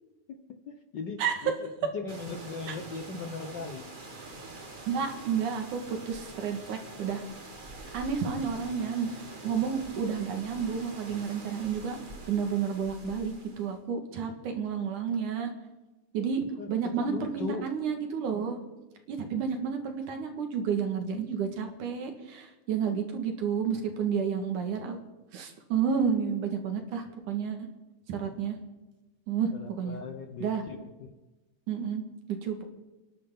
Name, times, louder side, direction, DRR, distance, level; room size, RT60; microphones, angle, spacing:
voice 1, 0.7-1.5 1.9-3.9 8.4-8.5 9.3-9.6 16.6-17.7 22.8-23.0 29.5-31.1, left 4 dB, 65° left, 6 dB, 1.0 m, -39 dB
sound 1, 2.1-13.8, right 2 dB, 30° right, 0.9 m, -45 dB
voice 2, 4.9-7.2 7.9-9.1 9.4-12.0 12.3-15.5 16.1-16.4 16.7-18.6 19.1-25.0 25.3-27.6 28.1-28.6 29.3-29.5 29.8-30.0 30.4-30.6 31.7-32.0 32.4-32.6, right 7 dB, 75° right, 4 dB, 3.2 m, -31 dB
29.5 x 11.0 x 3.8 m, 1.1 s
omnidirectional pair, 3.6 m